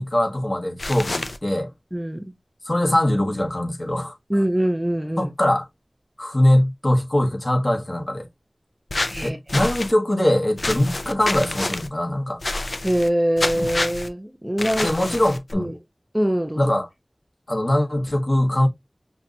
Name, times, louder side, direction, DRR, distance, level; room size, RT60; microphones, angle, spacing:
voice 1, 0.0-1.7 2.7-4.1 5.2-5.7 6.2-8.3 9.2-12.4 14.8-15.7 16.6-16.9 17.5-18.7, left 1 dB, 45° left, 1.3 m, -22 dB
sound 1, 0.8-1.4 8.9-9.9 10.6-11.9 12.4-13.1 13.4-14.1 14.6-15.5, left 2 dB, 75° left, 0.5 m, -28 dB
voice 2, 1.9-2.2 4.3-5.3 9.0-9.7 12.8-14.9 15.5-15.7 16.1-16.6, equal, 15° right, 0.7 m, -23 dB
5.7 x 2.4 x 2.7 m
wide cardioid pair, 40°, 0 cm